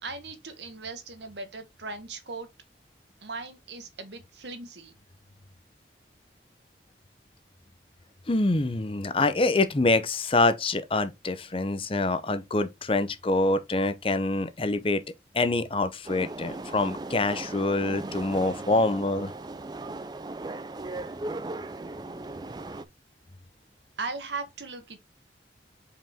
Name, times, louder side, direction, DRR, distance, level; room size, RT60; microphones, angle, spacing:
voice 1, 0.0-2.5 3.2-4.9 24.0-25.0, right 3 dB, 80° right, 1.3 m, -38 dB
voice 2, 8.3-15.0 15.3-19.3, left 2 dB, 30° left, 0.7 m, -25 dB
sound 1, 16.1-22.8, right 2 dB, 25° right, 0.4 m, -37 dB
5.3 x 5.0 x 3.6 m
head